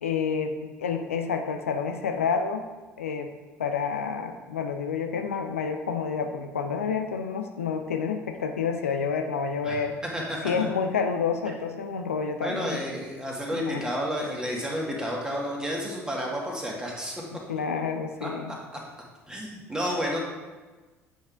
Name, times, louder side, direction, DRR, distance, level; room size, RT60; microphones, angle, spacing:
voice 1, 0.0-2.6 3.0-3.3 3.6-10.0 10.4-12.8 13.5-13.8 17.5-18.5, left 6 dB, 75° left, 6 dB, 0.4 m, -29 dB
voice 2, 10.1-10.5 12.4-17.2 18.2-18.3 19.3-20.2, equal, 10° right, -3 dB, 1.9 m, -31 dB
8.4 x 5.4 x 3.6 m, 1.3 s
figure-of-eight pair, 60°, 7 cm